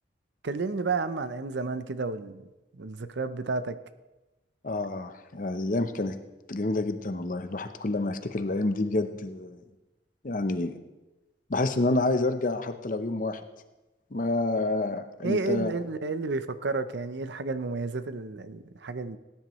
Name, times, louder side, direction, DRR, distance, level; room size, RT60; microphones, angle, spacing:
voice 1, 0.4-2.4 2.8-3.8 15.2-19.2, right 3 dB, 65° right, 0.6 m, -31 dB
voice 2, 4.6-6.1 6.5-9.6 10.2-10.8 11.5-13.4 14.1-15.7, left 2 dB, 45° left, 0.7 m, -28 dB
18.0 x 10.5 x 3.1 m
head